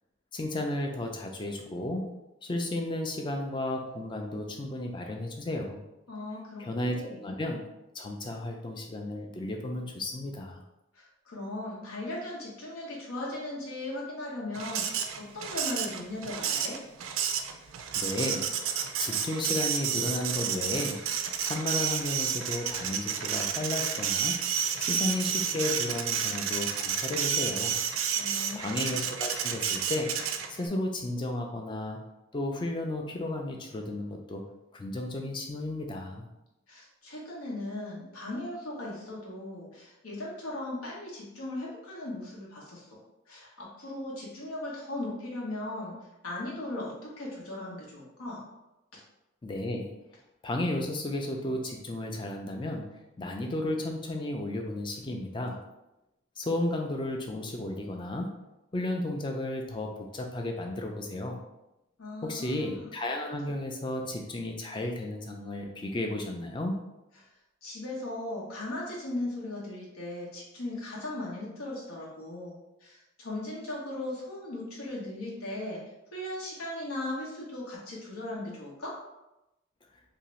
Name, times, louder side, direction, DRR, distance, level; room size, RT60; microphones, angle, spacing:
voice 1, 0.3-2.1 2.4-5.8 6.6-7.7 7.9-10.6 18.0-21.0 21.4-24.4 24.8-27.8 28.6-32.1 32.3-34.4 34.7-36.2 49.4-49.9 50.4-55.6 56.4-58.4 58.7-61.4 62.2-66.8, left 1 dB, 25° left, 2 dB, 0.3 m, -33 dB
voice 2, 6.1-6.7 6.9-7.2 10.9-16.8 28.2-28.8 36.7-42.8 43.3-46.0 46.2-48.4 62.0-62.9 67.6-75.8 76.1-79.0, left 1 dB, 90° left, -4 dB, 0.9 m, -38 dB
Printer, 14.5-30.7, right 8 dB, 70° right, 0.3 m, -31 dB
2.7 x 2.5 x 3.0 m, 0.94 s
head